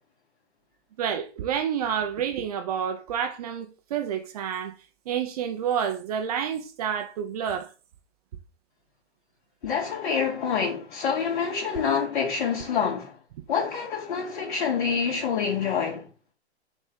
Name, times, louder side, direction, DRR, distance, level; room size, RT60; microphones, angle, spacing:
voice 1, 1.0-4.7 5.1-7.7, right 8 dB, 35° right, 0.8 m, -29 dB
voice 2, 9.6-13.1 13.5-16.1, left 6 dB, 45° left, 2.8 m, -27 dB
6.4 x 3.1 x 5.5 m
figure-of-eight pair, 120°, 33 cm